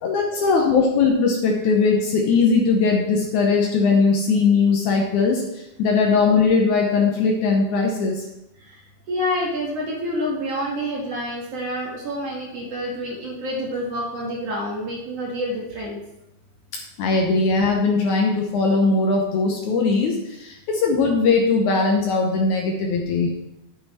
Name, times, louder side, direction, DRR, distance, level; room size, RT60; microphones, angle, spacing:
voice 1, 0.0-5.4 5.8-8.2 17.0-23.3, left 4 dB, 90° left, 0 dB, 1.7 m, -19 dB
voice 2, 9.1-16.0, equal, 50° right, -2 dB, 2.0 m, -28 dB
9.4 x 9.2 x 4.3 m, 0.85 s
omnidirectional pair, 5.1 m